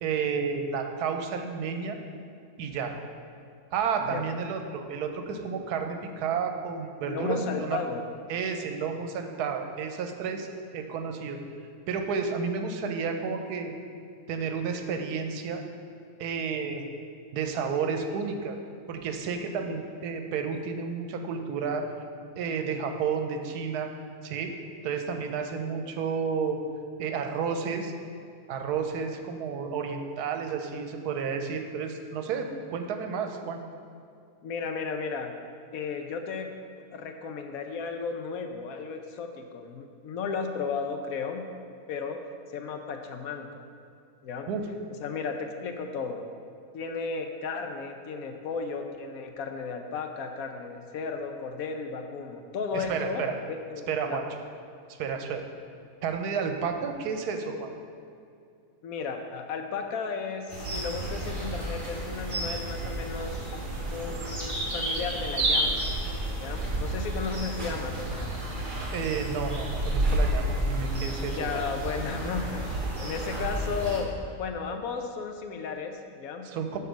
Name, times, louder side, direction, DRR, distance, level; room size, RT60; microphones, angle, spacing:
voice 1, 0.0-2.0 2.6-2.9 3.7-7.8 8.3-10.5 10.7-11.4 11.9-13.7 14.3-15.6 16.2-16.8 17.3-18.6 18.9-21.9 22.4-23.9 24.2-24.5 24.8-26.6 27.0-27.9 28.5-33.6 44.5-44.6 52.7-53.3 53.9-54.2 54.9-55.4 56.0-57.7 68.9-71.7 76.4-76.8, right 6 dB, 85° right, 5 dB, 1.2 m, -31 dB
voice 2, 7.0-8.0 16.7-16.8 25.8-25.9 34.4-35.3 35.7-36.5 36.9-41.5 41.9-42.2 42.5-43.6 44.2-44.5 45.0-46.2 46.7-53.2 53.5-54.2 58.8-63.6 63.9-65.8 66.4-68.4 71.2-74.1 74.4-76.5, left 5 dB, 70° left, 5 dB, 1.0 m, -34 dB
sound 1, 60.5-74.0, right 1 dB, 35° right, 1.3 m, -31 dB
6.7 x 4.4 x 5.1 m, 2.4 s
omnidirectional pair, 1.6 m